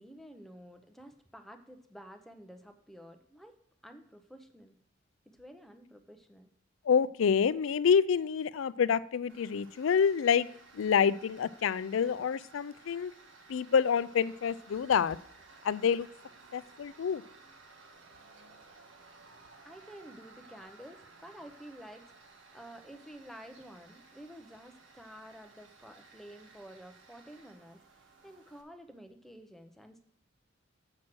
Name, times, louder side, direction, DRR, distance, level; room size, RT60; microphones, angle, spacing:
voice 1, 0.0-3.6 3.8-4.8 5.3-6.5 19.6-30.0, equal, ahead, 6 dB, 0.7 m, -51 dB
voice 2, 6.8-10.5 10.7-13.1 13.5-15.2 15.6-16.1 16.5-17.2, left 7 dB, 80° left, 17 dB, 0.4 m, -27 dB
Tools, 9.3-28.6, right 3 dB, 80° right, 1.4 m, -57 dB
7.5 x 6.2 x 6.0 m, 0.67 s
head